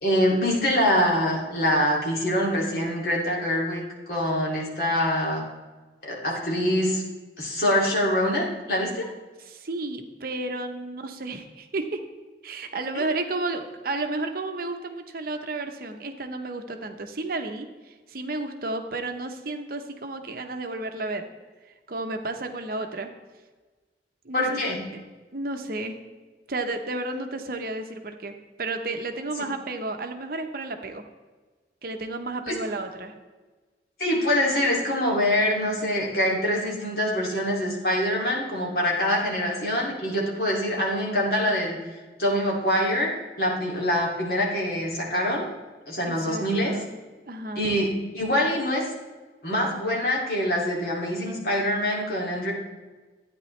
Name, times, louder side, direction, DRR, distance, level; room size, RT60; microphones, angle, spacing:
voice 1, 0.0-3.8 4.1-5.4 6.0-7.0 7.4-9.1 24.3-24.8 32.5-32.6 34.0-41.8 42.2-43.1 43.4-45.5 45.9-46.7 47.6-47.9 48.1-48.8 49.4-52.5, equal, 55° left, -3 dB, 2.5 m, -24 dB
voice 2, 9.4-12.0 12.4-21.3 21.9-23.1 24.2-24.6 25.3-26.0 26.5-31.0 31.8-33.1 46.1-46.9 47.3-47.8, right 2 dB, 50° right, 6 dB, 0.8 m, -32 dB
12.0 x 9.3 x 3.2 m, 1.3 s
head